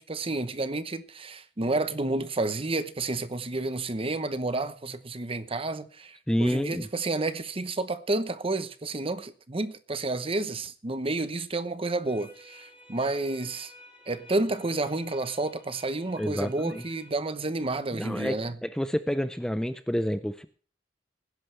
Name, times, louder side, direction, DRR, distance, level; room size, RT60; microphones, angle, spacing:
voice 1, 0.0-13.7 14.1-18.6, right 2 dB, 30° right, 0.9 m, -30 dB
voice 2, 6.3-6.9 16.2-16.8 17.9-20.4, equal, 5° left, 0.5 m, -29 dB
sound 1, 12.1-17.1, left 1 dB, 30° left, 4.4 m, -52 dB
20.0 x 11.0 x 3.3 m
head